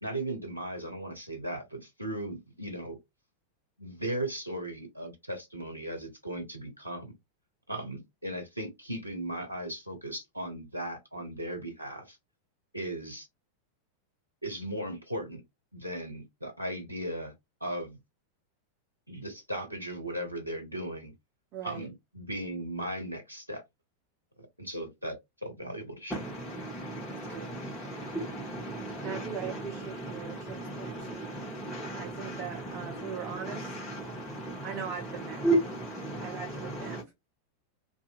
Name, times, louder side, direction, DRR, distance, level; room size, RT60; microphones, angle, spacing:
voice 1, 0.0-3.0 3.8-7.1 7.7-12.2 12.7-13.3 14.4-15.4 15.7-17.3 17.6-18.0 19.1-21.1 21.6-23.6 24.4-26.1, right 1 dB, 90° right, 0.7 m, -37 dB
voice 2, 21.5-21.9 27.3-27.6 29.0-31.3 32.0-33.8 34.6-35.4 36.2-37.1, right 7 dB, 40° right, 0.6 m, -40 dB
voice 3, 26.1-37.0, right 1 dB, 10° left, 1.1 m, -35 dB
2.6 x 2.5 x 2.5 m
figure-of-eight pair, 90°, 0 cm